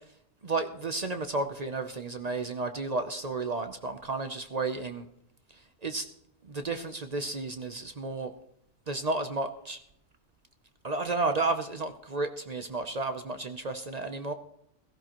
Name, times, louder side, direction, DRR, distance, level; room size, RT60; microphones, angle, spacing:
voice 1, 0.4-5.1 5.8-6.1 6.4-8.3 8.9-9.8 10.8-14.3, right 3 dB, 40° right, 8 dB, 0.7 m, -32 dB
16.5 x 15.0 x 3.0 m, 0.74 s
omnidirectional pair, 1.2 m